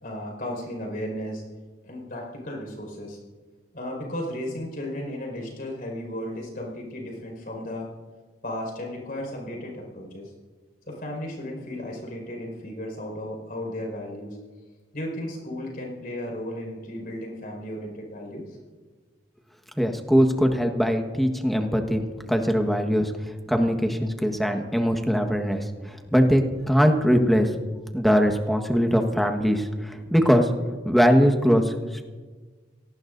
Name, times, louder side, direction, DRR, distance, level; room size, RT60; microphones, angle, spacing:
voice 1, 0.0-1.4 1.8-3.2 3.7-7.9 8.4-10.3 10.9-14.4 14.9-18.5, left 1 dB, 55° left, 0 dB, 5.2 m, -34 dB
voice 2, 19.8-27.5 27.9-30.5 30.8-32.0, equal, ahead, 3 dB, 1.4 m, -21 dB
28.0 x 18.5 x 2.7 m, 1.4 s
head